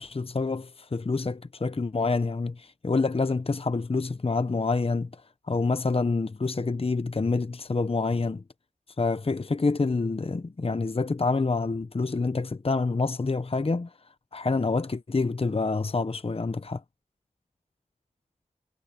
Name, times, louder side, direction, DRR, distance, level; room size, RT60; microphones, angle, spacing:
voice 1, 0.0-5.2 5.5-8.4 9.0-13.9 14.3-16.8, left 3 dB, 40° left, 0.9 m, -27 dB
cardioid pair, 40°, 15 cm